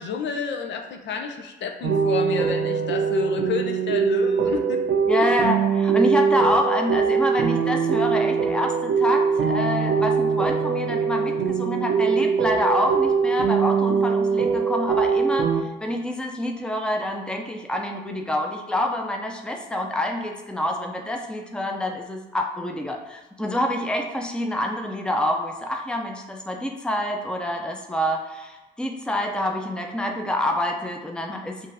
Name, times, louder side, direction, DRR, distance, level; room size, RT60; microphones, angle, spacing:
voice 1, 0.0-5.3, left 6 dB, 65° left, 4 dB, 0.6 m, -30 dB
sound 1, 1.8-15.6, right 6 dB, 75° right, 0.6 m, -22 dB
voice 2, 5.1-31.7, left 1 dB, 5° left, 2 dB, 0.6 m, -27 dB
5.4 x 2.6 x 3.4 m, 1.1 s
cardioid pair, 90°, 20 cm